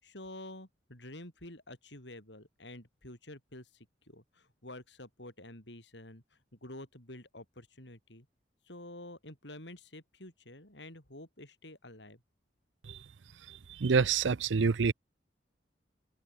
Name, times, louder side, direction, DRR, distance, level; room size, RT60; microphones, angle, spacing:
voice 1, 0.0-6.2 6.5-8.3 8.7-12.2, left 1 dB, 75° left, 7.8 m, -49 dB
voice 2, 13.8-14.9, right 5 dB, 90° right, 0.6 m, -26 dB
head